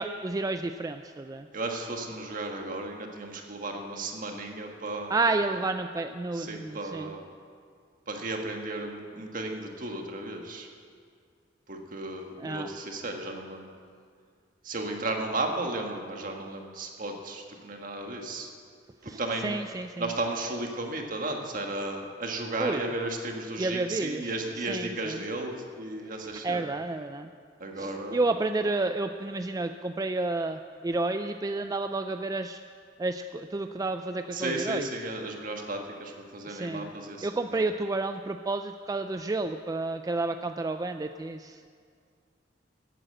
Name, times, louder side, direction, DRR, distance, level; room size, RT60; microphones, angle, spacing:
voice 1, 0.0-1.5 5.1-7.1 12.4-12.7 19.0-20.1 22.6-22.9 23.6-25.2 26.4-27.3 27.8-32.6 33.0-34.9 36.5-36.9 37.2-41.6, right 2 dB, 20° right, 8 dB, 0.3 m, -31 dB
voice 2, 1.5-5.2 6.3-7.2 8.1-10.7 11.7-13.7 14.6-18.5 19.0-19.5 20.0-26.6 27.6-28.2 34.3-37.6, right 2 dB, 50° right, 2 dB, 1.5 m, -34 dB
14.5 x 9.0 x 7.7 m, 2.1 s
head